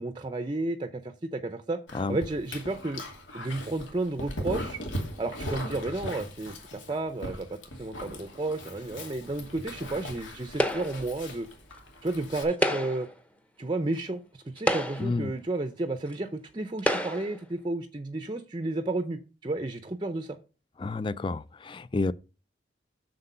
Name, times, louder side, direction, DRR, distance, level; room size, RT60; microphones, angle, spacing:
voice 1, 0.0-1.8 2.1-3.0 3.3-4.8 5.2-11.5 12.0-13.1 13.6-20.4, right 2 dB, 25° right, 0.6 m, -32 dB
Dog, 1.9-12.4, equal, 80° left, 2.5 m, -39 dB
sound 1, 10.6-11.1 12.5-13.1 14.0-14.1 14.6-15.2 16.1-16.2 16.8-17.4, equal, 5° left, 0.8 m, -28 dB
voice 2, 15.0-15.3 20.8-22.1, left 3 dB, 25° left, 0.3 m, -30 dB
7.9 x 6.7 x 5.5 m
head